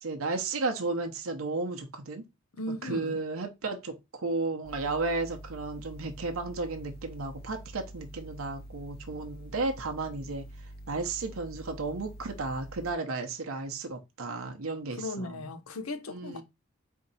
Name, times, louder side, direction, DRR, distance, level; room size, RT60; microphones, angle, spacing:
voice 1, 0.0-2.2 2.8-10.5 10.9-15.4 16.1-16.4, right 3 dB, 80° right, 0.8 m, -33 dB
voice 2, 2.5-3.2 14.9-16.4, left 2 dB, 85° left, 0.7 m, -37 dB
sound 1, 4.6-12.9, right 1 dB, 45° left, 0.6 m, -46 dB
4.4 x 2.8 x 4.1 m
head